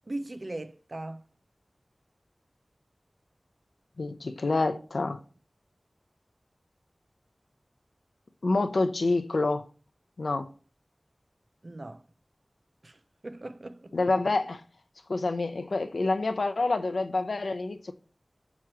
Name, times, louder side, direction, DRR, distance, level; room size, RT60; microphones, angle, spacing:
voice 1, 0.1-1.3 11.6-12.0 12.8-13.9, right 2 dB, 50° right, 0.6 m, -39 dB
voice 2, 4.0-5.2 8.4-9.6 10.2-10.5 13.9-14.6 15.1-17.9, left 3 dB, 90° left, 0.7 m, -27 dB
8.5 x 3.1 x 6.1 m
wide cardioid pair, 50°, 0 cm